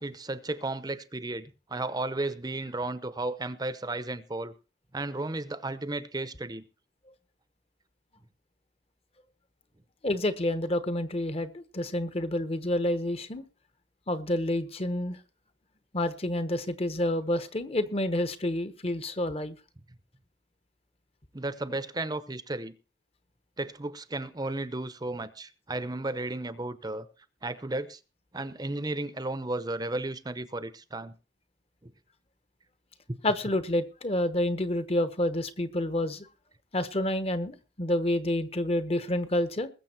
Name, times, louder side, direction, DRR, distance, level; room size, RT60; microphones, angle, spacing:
voice 1, 0.0-4.5 4.9-6.6 21.3-22.7 23.6-27.1 27.4-28.0 28.3-31.1 31.8-31.9 33.1-33.2, right 2 dB, 20° right, 14 dB, 0.8 m, -34 dB
voice 2, 10.0-13.4 14.1-15.2 15.9-19.6 33.2-36.3 36.7-39.7, left 1 dB, 30° left, 12 dB, 1.1 m, -29 dB
21.0 x 7.2 x 4.5 m, 0.33 s
head